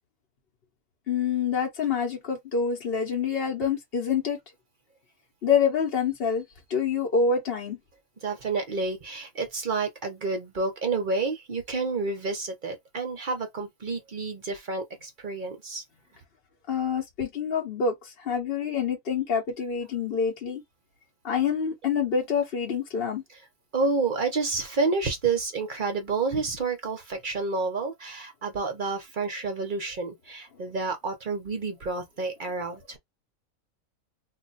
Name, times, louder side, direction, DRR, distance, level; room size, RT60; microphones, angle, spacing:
voice 1, 1.1-4.4 5.4-6.4 6.7-7.8 16.7-20.6 21.2-23.2, left 6 dB, 50° left, 0.8 m, -26 dB
voice 2, 8.2-15.8 23.7-33.0, right 4 dB, 45° right, 0.7 m, -29 dB
2.4 x 2.2 x 3.9 m
omnidirectional pair, 1.5 m